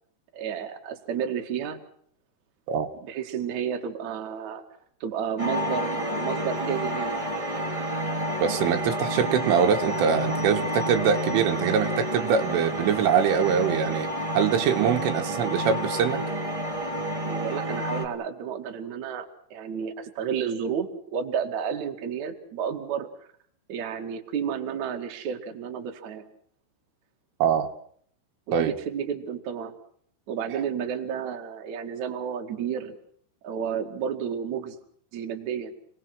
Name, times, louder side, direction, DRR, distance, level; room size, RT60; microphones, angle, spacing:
voice 1, 0.3-1.8 3.0-4.6 5.0-7.3 17.2-23.3 23.7-26.2 28.5-29.7 30.3-33.0 33.4-34.8 35.1-35.7, right 7 dB, 45° right, 3 dB, 2.8 m, -31 dB
sound 1, 5.4-18.1, right 1 dB, 10° right, 1.4 m, -29 dB
voice 2, 8.4-14.1 14.4-16.2 27.4-27.7 28.5-28.7, right 7 dB, 75° right, 6 dB, 4.0 m, -23 dB
29.5 x 20.5 x 6.3 m, 0.64 s
omnidirectional pair, 5.8 m